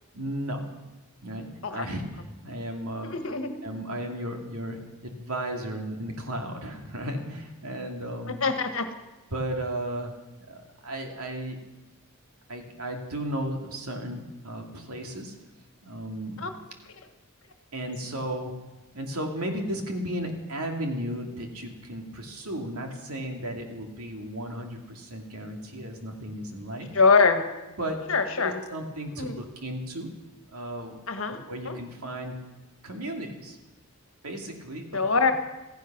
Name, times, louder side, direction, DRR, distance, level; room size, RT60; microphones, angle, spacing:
voice 1, 0.1-0.7 1.2-3.1 3.6-8.4 9.3-10.1 10.5-11.6 12.5-15.4 15.8-16.5 17.7-18.5 18.9-26.9 27.8-28.0 28.4-30.1 30.5-31.0 31.5-32.4 32.8-33.6 34.2-35.0, right 1 dB, 85° right, 3 dB, 2.6 m, -34 dB
voice 2, 3.0-3.5 8.3-8.8 16.4-16.5 26.9-27.4 28.1-28.5 29.2-29.3 31.1-31.4 31.6-31.8 34.9-35.3, left 4 dB, 65° left, 7 dB, 1.5 m, -23 dB
16.0 x 15.0 x 6.1 m, 1.1 s
head